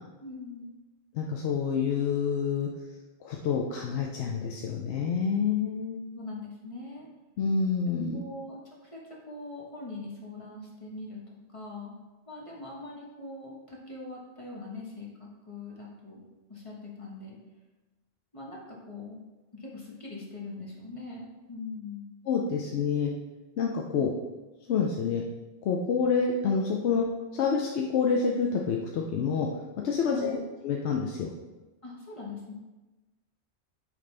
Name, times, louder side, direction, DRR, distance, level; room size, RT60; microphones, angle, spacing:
voice 1, 0.2-0.7 6.1-7.1 8.1-12.0 12.3-16.2 16.5-17.4 18.3-19.2 19.5-22.1 30.0-30.5 31.8-32.5, left 3 dB, 30° left, -3 dB, 1.3 m, -42 dB
voice 2, 1.1-2.7 3.2-6.0 7.4-8.2 22.3-23.1 23.6-24.1 24.7-25.2 25.6-27.0 27.3-29.5 29.8-31.3, left 6 dB, 80° left, 0 dB, 0.9 m, -27 dB
8.6 x 3.4 x 3.3 m, 1.1 s
omnidirectional pair, 1.1 m